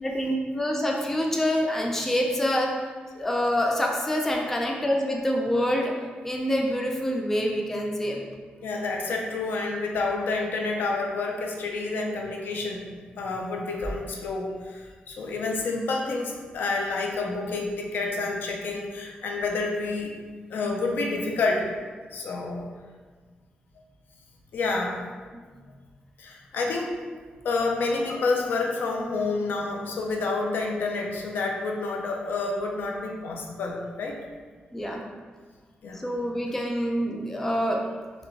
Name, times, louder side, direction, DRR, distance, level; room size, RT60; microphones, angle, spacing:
voice 1, 0.0-2.7 3.2-5.9 6.2-8.2 25.3-25.4 34.7-35.0 36.0-37.8, equal, 10° left, 0 dB, 0.4 m, -26 dB
voice 2, 8.6-12.9 13.2-20.2 20.5-21.7 22.1-22.7 24.5-25.0 26.2-26.9 27.4-34.2 35.8-36.0, left 3 dB, 80° left, 0 dB, 0.6 m, -29 dB
3.9 x 3.4 x 3.4 m, 1.5 s
wide cardioid pair, 155°, 3 cm